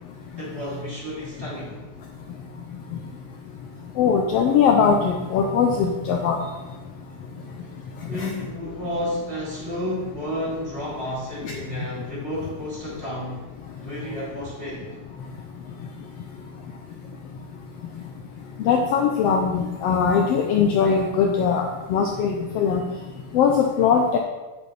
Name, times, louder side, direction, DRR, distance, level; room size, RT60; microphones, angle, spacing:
voice 1, 0.4-1.8 8.1-13.5 13.8-14.9, equal, 20° right, -6 dB, 3.7 m, -31 dB
voice 2, 4.0-6.4 8.1-8.3 18.6-21.6 21.9-22.8 23.3-24.2, left 6 dB, 80° left, 2 dB, 1.4 m, -20 dB
8.4 x 8.4 x 4.1 m, 1.2 s
omnidirectional pair, 3.6 m